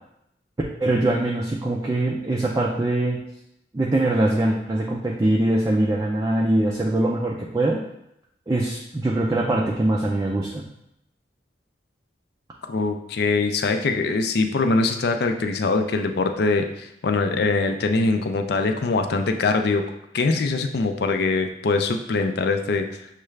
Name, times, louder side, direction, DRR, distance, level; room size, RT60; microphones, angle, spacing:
voice 1, 0.8-3.2 3.7-7.8 8.5-10.6, right 1 dB, 20° right, -3 dB, 0.4 m, -22 dB
voice 2, 12.7-19.8 20.1-22.9, left 3 dB, 60° left, 6 dB, 0.4 m, -23 dB
6.5 x 2.4 x 3.2 m, 0.81 s
head